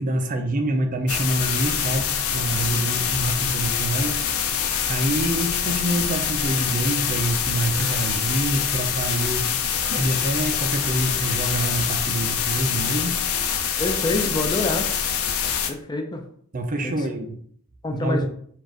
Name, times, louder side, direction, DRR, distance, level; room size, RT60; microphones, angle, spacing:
voice 1, 0.0-4.2 4.5-13.2 16.5-17.3 17.9-18.3, right 1 dB, 40° right, 5 dB, 0.5 m, -26 dB
sound 1, 1.1-15.7, left 7 dB, 80° left, 0.6 m, -25 dB
voice 2, 13.8-14.9 15.7-16.2 16.8-16.9 17.8-18.3, left 2 dB, 20° left, 4 dB, 0.4 m, -26 dB
4.5 x 2.5 x 4.5 m, 0.62 s
head